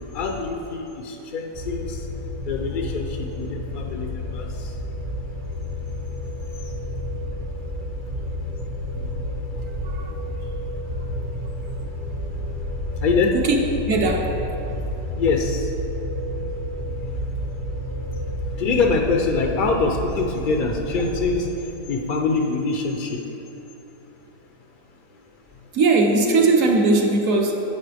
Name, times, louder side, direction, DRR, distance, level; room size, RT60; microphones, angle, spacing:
voice 1, 0.1-2.0 2.5-4.7 13.0-13.3 14.7-14.8 15.1-15.7 18.6-21.5 21.9-23.2, left 4 dB, 75° left, 2 dB, 0.4 m, -24 dB
sound 1, 1.5-21.5, left 1 dB, 40° right, 0.7 m, -30 dB
voice 2, 9.8-10.1 13.3-13.6 13.9-14.4 16.1-16.2 25.7-27.6, right 3 dB, 65° right, 2 dB, 1.1 m, -19 dB
8.4 x 8.2 x 3.4 m, 3.0 s
omnidirectional pair, 1.6 m